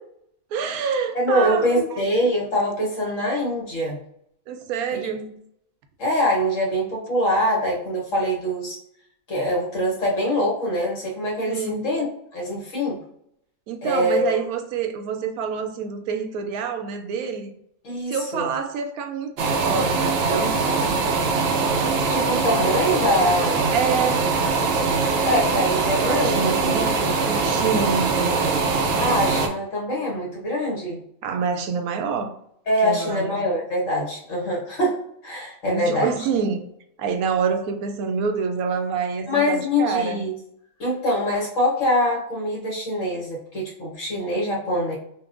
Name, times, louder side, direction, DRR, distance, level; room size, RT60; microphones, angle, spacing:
voice 1, 0.5-2.0 4.5-5.4 11.5-11.9 13.7-17.5 18.1-20.6 23.7-24.3 26.0-28.6 31.2-32.3 32.8-33.4 35.7-36.7 37.0-40.2, right 6 dB, 85° right, 1.0 m, -27 dB
voice 2, 1.1-4.0 4.9-5.0 6.0-8.8 9.3-12.1 12.3-13.0 13.8-14.3 17.8-18.5 22.0-23.6 25.2-26.5 29.0-31.0 32.7-36.1 39.3-40.3 40.8-45.0, equal, 65° left, 1.6 m, -24 dB
sound 1, 19.4-29.5, right 4 dB, 65° right, 0.6 m, -22 dB
5.5 x 2.2 x 2.5 m
omnidirectional pair, 1.5 m